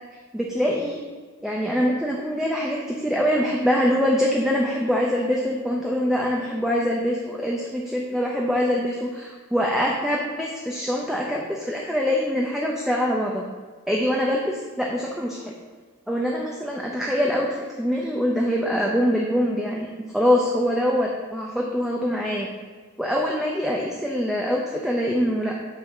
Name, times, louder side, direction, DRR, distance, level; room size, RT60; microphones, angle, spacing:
voice 1, 0.3-1.0 1.4-13.4 13.9-15.5 16.1-19.9 20.1-22.5 23.0-25.7, equal, ahead, -2 dB, 0.6 m, -24 dB
8.7 x 4.1 x 6.0 m, 1.5 s
head